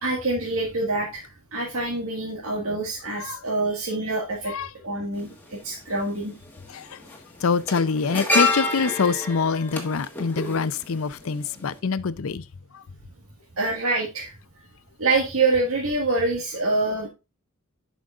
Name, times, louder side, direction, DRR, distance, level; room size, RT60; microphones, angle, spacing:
voice 1, 0.0-4.6 4.8-6.3 13.6-14.3 15.0-17.1, right 3 dB, 70° right, 1.8 m, -26 dB
voice 2, 3.1-3.4 4.5-4.7 6.7-7.0 7.4-12.4 12.7-12.8, left 5 dB, 70° left, 0.5 m, -25 dB
sound 1, 5.2-5.3 6.5-6.7 7.0-11.3 11.6-11.8, left 2 dB, 10° left, 1.5 m, -27 dB
11.0 x 5.1 x 2.4 m
head